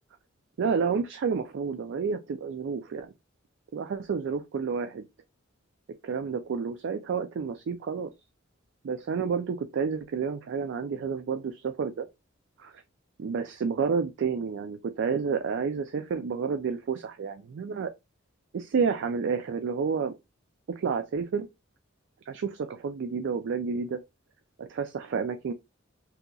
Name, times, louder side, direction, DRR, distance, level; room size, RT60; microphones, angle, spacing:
voice 1, 0.6-3.1 3.7-5.0 6.0-8.1 8.8-12.1 12.6-12.8 13.2-17.9 18.5-20.1 20.7-21.5 22.3-24.0 24.6-25.5, right 5 dB, 60° right, 0.3 m, -30 dB
3.7 x 2.8 x 2.3 m
head